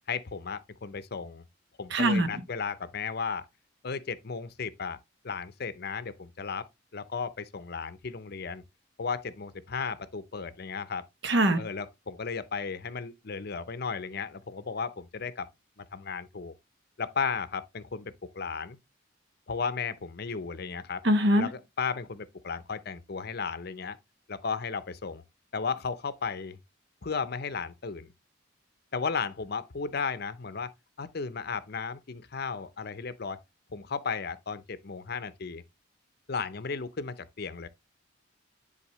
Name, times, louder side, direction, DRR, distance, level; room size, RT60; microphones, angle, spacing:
voice 1, 0.1-1.4 1.8-3.5 3.8-5.0 5.2-8.6 9.0-11.1 11.6-15.5 15.8-16.5 17.0-18.8 19.5-21.0 21.4-24.0 24.3-25.2 25.5-26.6 27.0-28.1 28.9-30.7 31.0-33.4 33.7-35.6 36.3-37.7, left 5 dB, 55° left, 0.6 m, -35 dB
voice 2, 1.9-2.3 11.2-11.6 21.0-21.5, right 1 dB, 60° right, 1.1 m, -22 dB
10.0 x 4.2 x 3.1 m
head